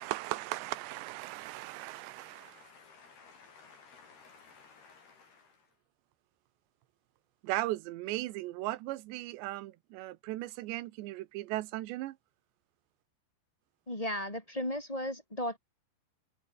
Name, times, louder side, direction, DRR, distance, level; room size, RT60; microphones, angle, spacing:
voice 1, 0.0-2.6 7.4-12.2, right 17 dB, 80° right, 3.1 m, -37 dB
voice 2, 1.6-5.8, left 5 dB, 60° left, 6.0 m, -57 dB
voice 3, 13.9-15.6, left 1 dB, 15° left, 1.6 m, -35 dB
omnidirectional pair, 5.2 m